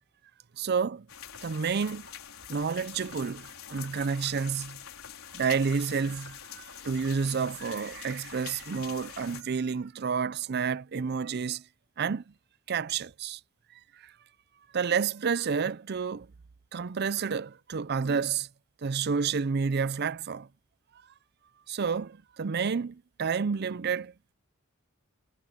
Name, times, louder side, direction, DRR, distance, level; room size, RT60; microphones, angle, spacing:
voice 1, 0.6-1.1 1.4-2.1 2.5-4.8 5.3-11.6 12.0-12.3 12.7-13.4 13.7-14.1 14.7-16.3 16.7-18.5 18.8-20.5 21.7-24.3, right 6 dB, 50° right, 0.5 m, -30 dB
sound 1, 1.1-9.4, left 9 dB, 80° left, 4.2 m, -45 dB
head